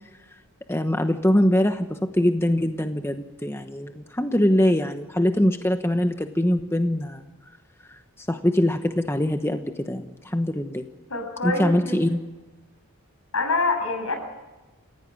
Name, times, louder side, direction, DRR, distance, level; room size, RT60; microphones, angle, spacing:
voice 1, 0.7-7.2 7.9-10.8 11.4-12.2, left 1 dB, 10° left, 6 dB, 1.1 m, -23 dB
voice 2, 11.1-11.9 13.3-14.2, left 3 dB, 70° left, 5 dB, 7.6 m, -25 dB
30.0 x 16.5 x 8.8 m, 1.1 s
head